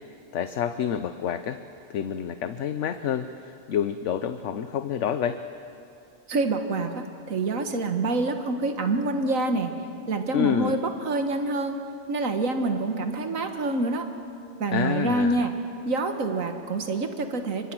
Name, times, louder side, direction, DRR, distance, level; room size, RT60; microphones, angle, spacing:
voice 1, 0.3-1.6 1.9-5.4 10.3-10.8 14.7-15.5, left 9 dB, 65° left, 10 dB, 1.0 m, -28 dB
voice 2, 6.3-9.7 10.1-14.1 14.6-15.5 15.9-17.7, right 2 dB, 90° right, 6 dB, 1.8 m, -26 dB
29.5 x 25.5 x 6.1 m, 2.7 s
omnidirectional pair, 1.4 m